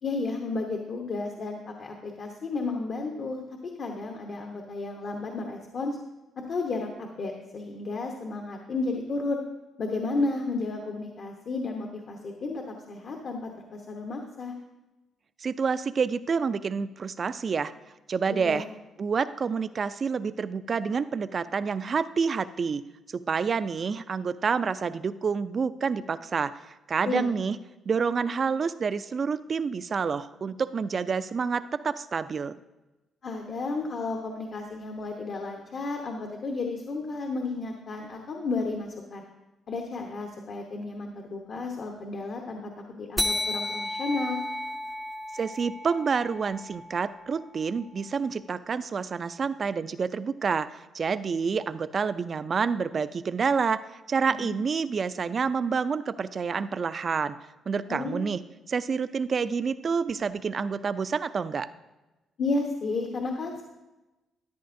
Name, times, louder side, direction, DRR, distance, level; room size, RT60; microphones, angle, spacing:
voice 1, 0.0-3.4 3.8-6.0 6.4-9.4 9.8-14.5 18.3-18.7 27.0-27.3 33.2-39.2 39.7-44.4 54.3-54.5 57.9-58.3 62.4-63.6, left 3 dB, 55° left, 2 dB, 1.0 m, -32 dB
voice 2, 15.4-17.7 18.1-18.7 19.0-22.8 23.1-26.5 26.9-27.6 27.9-32.5 45.3-53.8 54.1-57.4 57.7-58.4 58.7-61.7, right 5 dB, 45° right, 14 dB, 0.4 m, -28 dB
sound 1, 43.2-48.1, left 1 dB, 10° left, 0.5 m, -34 dB
13.0 x 10.0 x 2.6 m, 1.1 s
cardioid pair, 90°, 0 cm